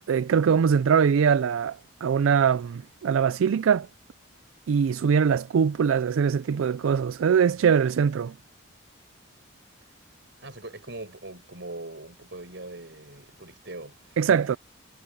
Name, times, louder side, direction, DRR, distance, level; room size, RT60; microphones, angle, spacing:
voice 1, 0.1-3.9 4.7-8.3 14.2-14.6, right 7 dB, 70° right, 0.3 m, -22 dB
voice 2, 10.4-14.4, right 2 dB, 55° right, 5.8 m, -41 dB
head